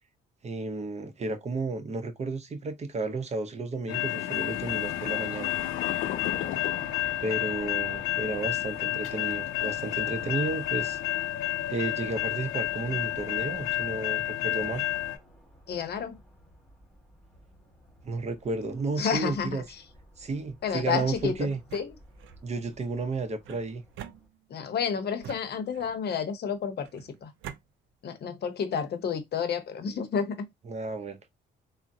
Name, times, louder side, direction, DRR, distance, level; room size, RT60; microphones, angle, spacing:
voice 1, 0.4-5.5 7.2-11.0 11.7-14.8 18.0-19.6 20.2-21.6 22.4-23.8 30.6-31.2, right 3 dB, 35° right, 0.6 m, -32 dB
sound 1, 3.9-15.2, left 15 dB, 90° left, 0.5 m, -30 dB
sound 2, 4.6-24.3, equal, ahead, 1.8 m, -52 dB
voice 2, 15.7-16.2 19.0-19.6 20.6-21.3 21.7-21.9 24.5-27.3 28.0-30.5, left 7 dB, 55° left, 0.7 m, -30 dB
sound 3, 21.5-22.4 23.4-24.7 25.2-26.1 26.8-27.6, right 10 dB, 80° right, 0.4 m, -45 dB
3.6 x 2.0 x 2.6 m
cardioid pair, 90°, 20 cm